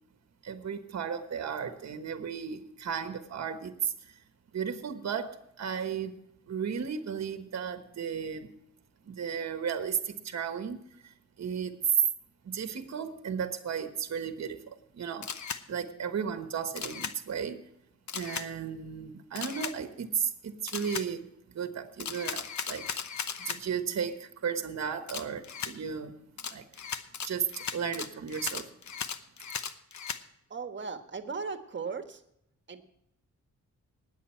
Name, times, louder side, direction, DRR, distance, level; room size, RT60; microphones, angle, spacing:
voice 1, 0.4-4.2 4.5-6.2 6.5-8.5 9.0-11.8 12.4-15.3 15.7-17.6 18.1-22.9 23.4-26.7 27.3-28.7, right 7 dB, 60° right, 8 dB, 1.2 m, -35 dB
Camera, 15.2-15.6 16.8-17.1 18.1-18.5 19.3-19.7 20.7-21.1 22.0-23.6 25.1-25.7 26.4-30.2, left 7 dB, 65° left, 1.0 m, -37 dB
voice 2, 30.5-32.2 32.7-32.8, right 5 dB, 35° right, 7 dB, 1.4 m, -37 dB
19.5 x 8.2 x 4.4 m, 0.78 s
wide cardioid pair, 145°, 31 cm